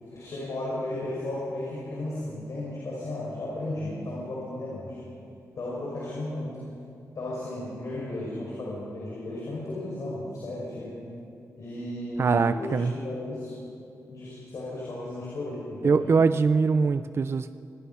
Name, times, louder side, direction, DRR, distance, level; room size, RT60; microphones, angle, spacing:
voice 1, 0.0-5.0 5.6-6.6 7.1-11.0 11.6-13.5 14.1-16.0, left 1 dB, 60° left, -6 dB, 6.0 m, -34 dB
voice 2, 12.2-12.9 15.8-17.5, right 5 dB, 45° right, 12 dB, 0.5 m, -22 dB
25.5 x 19.0 x 5.7 m, 2.6 s
wide cardioid pair, 110°, 6 cm